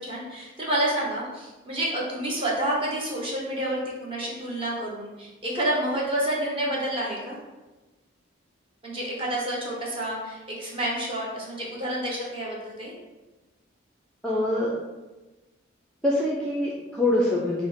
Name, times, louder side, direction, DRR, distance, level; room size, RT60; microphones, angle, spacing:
voice 1, 0.0-7.4 8.8-12.9, right 1 dB, 25° right, -5 dB, 1.0 m, -29 dB
voice 2, 14.2-14.7 16.0-17.7, left 1 dB, 5° left, -5 dB, 0.4 m, -24 dB
5.2 x 2.1 x 4.6 m, 1.2 s
head